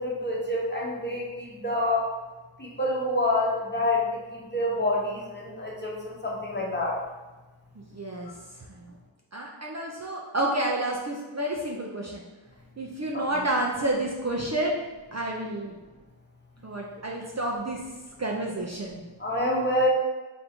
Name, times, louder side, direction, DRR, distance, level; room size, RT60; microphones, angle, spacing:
voice 1, 0.0-2.1 2.6-7.0 13.1-13.3 19.2-19.9, left 1 dB, 20° left, -3 dB, 0.9 m, -27 dB
voice 2, 7.8-8.3 8.7-8.9 9.3-12.2 12.8-14.8 15.1-15.8 16.6-17.8 18.2-19.0, right 1 dB, 35° right, -2 dB, 0.5 m, -30 dB
3.5 x 2.7 x 4.3 m, 1.2 s
wide cardioid pair, 85°, 47 cm